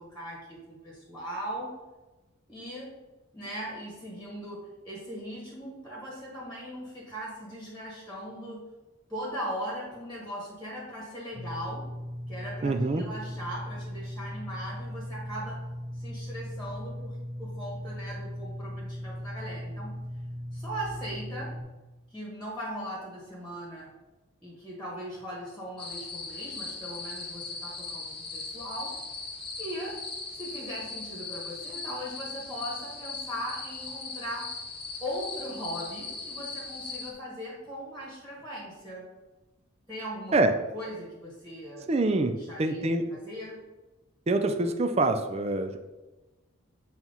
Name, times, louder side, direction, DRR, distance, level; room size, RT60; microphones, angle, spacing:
voice 1, 0.0-1.7 2.5-3.0 3.3-8.7 9.1-11.9 12.3-15.7 15.9-20.0 20.5-21.6 22.1-23.9 24.4-29.0 29.6-30.0 30.3-34.5 35.0-39.0 39.9-40.5 40.7-41.9 42.3-43.6, equal, 5° left, -5 dB, 1.5 m, -39 dB
sound 1, 11.3-21.6, equal, 70° right, 1.7 m, -38 dB
voice 2, 12.6-13.0 40.3-40.5 41.9-43.0 44.3-45.8, right 2 dB, 30° right, 7 dB, 0.4 m, -25 dB
sound 2, 25.8-37.1, left 4 dB, 25° left, 1.0 m, -39 dB
7.7 x 3.0 x 5.4 m, 1.1 s
head